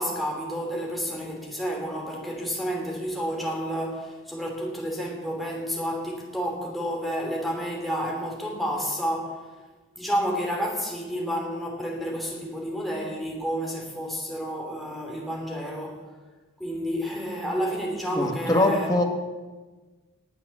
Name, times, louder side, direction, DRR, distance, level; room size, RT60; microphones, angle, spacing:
voice 1, 0.0-9.5 10.0-16.0 16.6-18.9, equal, ahead, -1 dB, 2.9 m, -30 dB
voice 2, 18.1-19.0, left 1 dB, 20° left, 3 dB, 1.6 m, -22 dB
20.0 x 8.0 x 7.1 m, 1.3 s
head